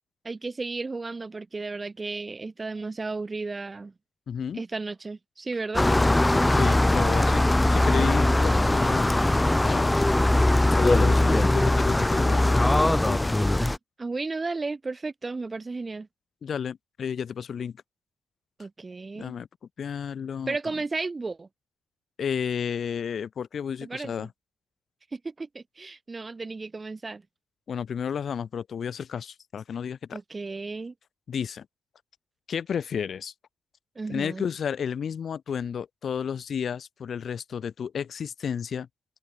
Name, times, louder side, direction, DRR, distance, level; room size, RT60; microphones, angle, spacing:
voice 1, 0.2-3.9 4.5-5.9 13.6-16.1 18.6-19.3 20.5-21.5 23.8-24.3 25.1-27.2 30.1-30.9 34.0-34.5, right 3 dB, 25° right, 5.2 m, -34 dB
voice 2, 4.3-4.6 6.5-10.1 10.8-13.3 16.4-17.7 19.2-19.5 19.8-20.6 22.2-24.3 27.7-30.2 31.3-31.7 32.5-33.3 34.1-38.9, left 7 dB, 50° left, 6.1 m, -32 dB
sound 1, 5.7-13.8, left 1 dB, 10° left, 1.3 m, -21 dB
open air
cardioid pair, 90°, 0 cm